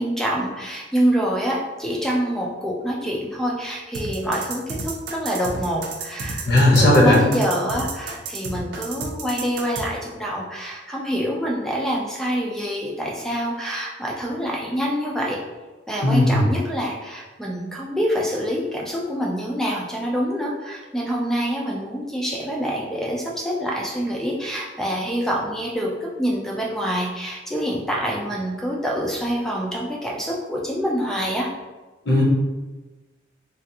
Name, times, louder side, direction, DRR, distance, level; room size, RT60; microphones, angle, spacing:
voice 1, 0.0-15.4 15.9-31.5, equal, ahead, -2 dB, 0.3 m, -26 dB
sound 1, 3.9-9.8, right 3 dB, 65° right, 0.5 m, -31 dB
voice 2, 6.5-7.2 16.0-16.5 32.1-32.2, left 1 dB, 55° left, -3 dB, 0.8 m, -15 dB
3.4 x 2.4 x 2.7 m, 1.2 s
head